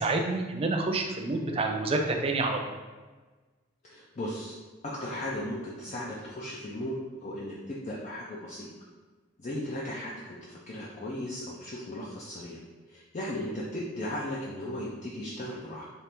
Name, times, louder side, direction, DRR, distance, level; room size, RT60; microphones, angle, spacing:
voice 1, 0.0-2.6, right 2 dB, 30° right, 3 dB, 0.4 m, -28 dB
voice 2, 3.8-4.6 4.8-8.7 9.4-12.6 12.9-15.9, left 1 dB, 35° left, -5 dB, 0.5 m, -36 dB
4.2 x 2.5 x 3.4 m, 1.3 s
head